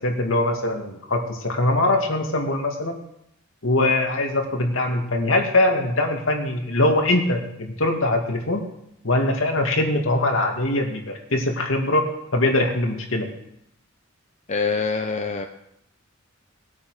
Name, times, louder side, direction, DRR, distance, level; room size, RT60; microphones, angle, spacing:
voice 1, 0.0-3.0 3.6-8.6 9.0-12.1 12.3-13.3, left 2 dB, 70° left, 2 dB, 2.6 m, -22 dB
voice 2, 14.5-15.5, left 4 dB, 35° left, 4 dB, 0.8 m, -24 dB
19.5 x 8.7 x 6.6 m, 0.81 s
head